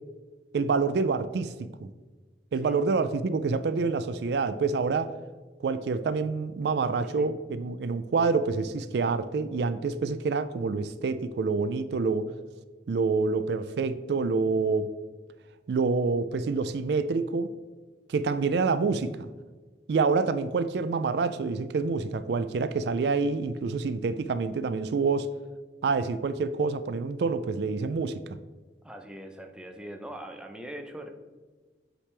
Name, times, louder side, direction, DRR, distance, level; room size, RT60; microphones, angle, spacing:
voice 1, 0.5-1.9 2.5-5.1 5.6-12.3 12.9-14.9 15.7-17.5 18.1-19.3 19.9-25.3 25.8-28.4, right 4 dB, 65° right, 13 dB, 0.3 m, -27 dB
voice 2, 28.8-31.1, right 1 dB, 5° right, 3 dB, 0.6 m, -41 dB
8.6 x 5.0 x 3.2 m, 1.3 s
head